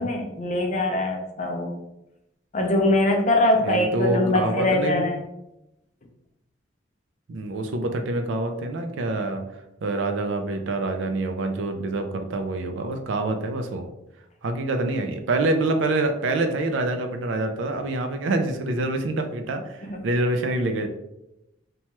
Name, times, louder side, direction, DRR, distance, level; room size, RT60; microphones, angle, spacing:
voice 1, 0.0-1.7 2.5-5.2 19.9-20.0, left 1 dB, 40° left, 2 dB, 0.4 m, -22 dB
voice 2, 3.6-5.0 7.3-9.4 9.8-13.9 14.4-20.9, right 2 dB, 75° right, 6 dB, 0.4 m, -26 dB
2.9 x 2.2 x 3.0 m, 0.89 s
head